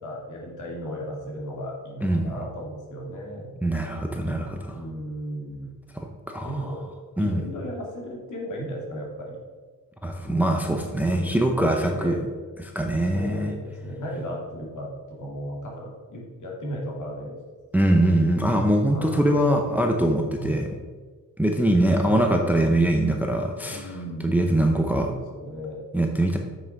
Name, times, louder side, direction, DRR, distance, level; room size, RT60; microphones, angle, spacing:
voice 1, 0.0-3.5 4.7-5.7 6.4-6.9 7.2-9.4 10.3-10.7 11.2-12.2 13.1-17.4 18.9-19.9 20.4-20.7 22.0-22.3 23.7-24.4 25.0-25.8, equal, 60° left, -2 dB, 2.6 m, -35 dB
voice 2, 3.6-4.8 5.9-6.6 7.2-7.4 10.0-12.2 12.6-13.5 17.7-20.7 21.4-24.0 24.2-25.1 25.9-26.4, right 1 dB, 5° right, 3 dB, 0.6 m, -23 dB
7.6 x 6.2 x 4.6 m, 1.4 s
cardioid pair, 145°, 34 cm